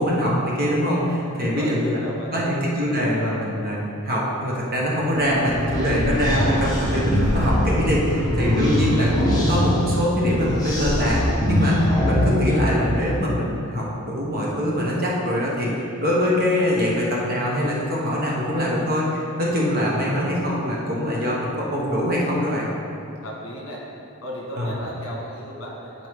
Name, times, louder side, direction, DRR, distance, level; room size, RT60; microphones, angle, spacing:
voice 1, 0.0-2.0 2.3-3.8 4.0-11.8 12.0-15.7 16.0-22.7 24.6-24.7, equal, 45° right, -4 dB, 1.3 m, -23 dB
voice 2, 1.2-2.6 23.2-23.8 24.2-26.1, equal, 60° left, -3 dB, 1.7 m, -35 dB
sound 1, 5.1-13.2, left 1 dB, 15° left, 1.1 m, -23 dB
10.5 x 4.5 x 3.7 m, 2.7 s
head